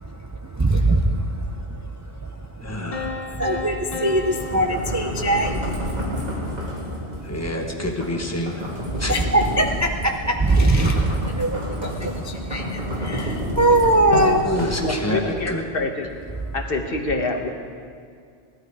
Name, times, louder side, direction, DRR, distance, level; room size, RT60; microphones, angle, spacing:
voice 1, 0.5-1.8 3.3-6.6 8.9-14.5, right 1 dB, 20° right, 3 dB, 0.5 m, -22 dB
voice 2, 2.6-3.6 3.9-4.0 7.2-8.6 9.0-9.2 14.4-15.6, left 1 dB, 15° left, 2 dB, 1.3 m, -28 dB
sound 1, 2.9-5.8, left 4 dB, 35° left, 1.2 m, -34 dB
sound 2, 4.2-15.2, equal, 40° right, 2.3 m, -30 dB
voice 3, 14.8-16.1 16.5-17.5, left 2 dB, 60° left, 4 dB, 1.3 m, -26 dB
17.5 x 12.0 x 4.8 m, 2.2 s
omnidirectional pair, 1.1 m